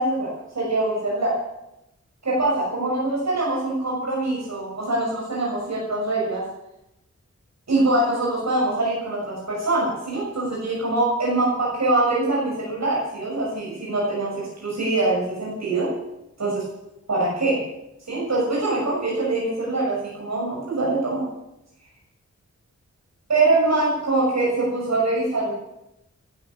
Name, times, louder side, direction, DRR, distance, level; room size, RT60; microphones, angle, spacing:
voice 1, 0.0-1.4 2.2-6.4 7.7-15.9 16.4-16.6 17.1-17.6 18.1-21.2 23.3-25.5, right 2 dB, 65° right, -4 dB, 6.6 m, -23 dB
17.0 x 12.0 x 7.0 m, 0.89 s
wide cardioid pair, 75°, 29 cm